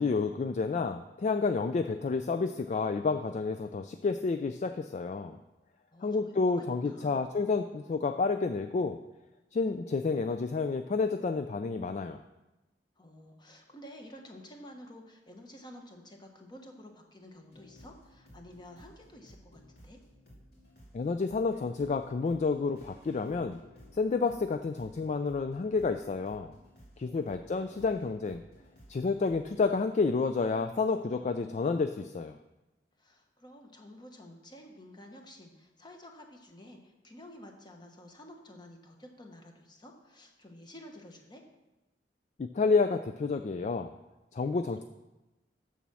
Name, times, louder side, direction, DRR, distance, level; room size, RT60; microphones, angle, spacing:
voice 1, 0.0-5.4 6.0-9.0 9.5-12.2 20.9-23.6 23.9-26.5 27.0-28.4 28.9-32.4 42.4-43.9 44.3-44.8, left 4 dB, 40° left, 8 dB, 0.3 m, -30 dB
voice 2, 5.9-7.2 13.0-20.0 27.0-27.7 28.0-28.1 33.0-41.4, left 1 dB, 25° left, 3 dB, 1.2 m, -51 dB
sound 1, 17.5-29.8, equal, 60° left, 2.7 m, -56 dB
7.2 x 7.0 x 6.2 m, 1.0 s
head